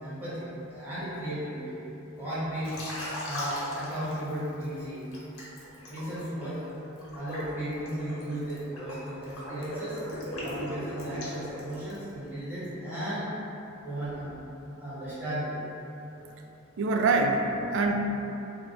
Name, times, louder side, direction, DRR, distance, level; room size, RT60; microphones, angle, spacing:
voice 1, 0.0-1.8 2.2-2.8 3.2-5.1 5.9-6.6 7.1-10.0 10.4-13.3 13.8-14.3 14.8-15.6, right 1 dB, 10° right, -13 dB, 1.2 m, -35 dB
Liquid, 2.6-4.6 5.1-12.1, left 1 dB, 85° left, 1.0 m, -39 dB
voice 2, 16.8-17.9, right 3 dB, 60° right, 3 dB, 0.3 m, -25 dB
3.5 x 2.2 x 3.8 m, 3.0 s
head